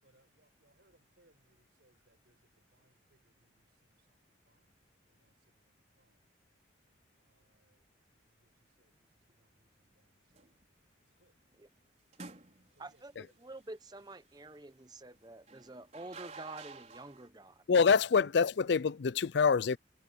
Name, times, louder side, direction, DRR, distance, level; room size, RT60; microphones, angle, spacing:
voice 1, 0.0-4.2 4.5-4.8 5.1-6.3 7.2-7.8 8.2-8.5 8.8-8.9 9.3-10.5 11.2-11.3 12.8-13.3 19.3-19.5, right 1 dB, 60° right, 5.8 m, -71 dB
sound 1, 10.3-10.6 12.1-12.9 15.5-17.3, right 4 dB, 35° right, 5.0 m, -50 dB
voice 2, 12.8-17.6 18.2-18.3, right 2 dB, 20° right, 1.0 m, -48 dB
voice 3, 17.7-19.8, left 5 dB, 65° left, 0.4 m, -26 dB
head